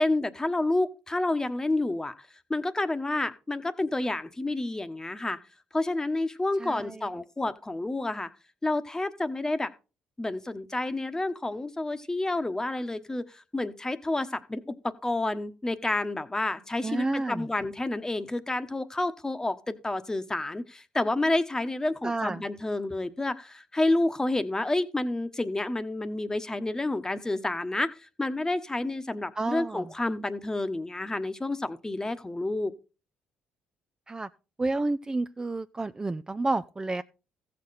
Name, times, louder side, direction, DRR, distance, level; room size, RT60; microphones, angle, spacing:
voice 1, 0.0-2.1 2.5-5.4 5.7-8.3 8.6-9.7 10.2-27.9 28.2-32.7, left 2 dB, 15° left, 1.1 m, -29 dB
voice 2, 6.6-7.0 16.8-17.5 22.0-22.4 29.4-29.9 34.1-34.3 34.6-37.0, right 2 dB, 20° right, 0.4 m, -30 dB
14.5 x 6.7 x 4.1 m
supercardioid pair, 60°, 3 cm